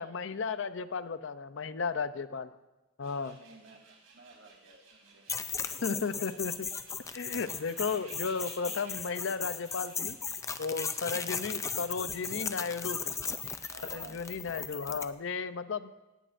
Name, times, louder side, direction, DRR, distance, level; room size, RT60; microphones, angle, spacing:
voice 1, 0.0-2.5 3.0-3.4 5.8-6.7 7.1-10.2 10.6-13.2 13.9-15.9, left 5 dB, 65° left, 13 dB, 0.6 m, -34 dB
sound 1, 3.0-14.0, right 4 dB, 90° right, 3.9 m, -57 dB
voice 2, 3.1-6.4 11.2-11.4 13.7-14.2, right 3 dB, 75° right, 1 dB, 2.0 m, -54 dB
sound 2, 5.3-15.1, left 6 dB, 15° left, 0.4 m, -37 dB
17.5 x 16.5 x 2.6 m, 1.1 s
head